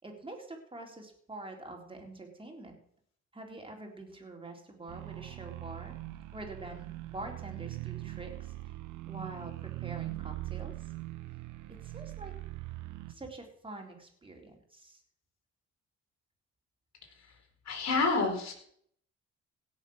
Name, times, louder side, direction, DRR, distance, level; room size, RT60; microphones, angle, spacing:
voice 1, 0.0-2.8 3.3-6.0 6.3-8.8 9.1-10.9 11.7-12.3 13.1-15.0, right 2 dB, 15° right, 1 dB, 4.0 m, -46 dB
sound 1, 4.9-13.1, right 17 dB, 80° right, 1.1 m, -41 dB
voice 2, 17.7-18.6, left 3 dB, 60° left, 2 dB, 4.7 m, -28 dB
17.0 x 7.4 x 6.4 m, 0.66 s
cardioid pair, 90°, 30 cm